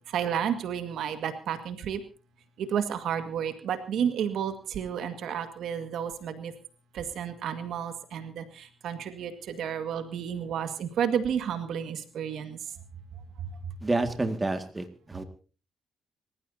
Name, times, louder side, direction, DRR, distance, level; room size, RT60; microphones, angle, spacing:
voice 1, 0.1-2.0 2.6-6.5 6.9-12.6, right 8 dB, 75° right, 8 dB, 1.8 m, -31 dB
voice 2, 13.8-15.2, right 2 dB, 20° right, 6 dB, 2.0 m, -29 dB
26.5 x 15.0 x 2.8 m, 0.36 s
cardioid pair, 90°, 0 cm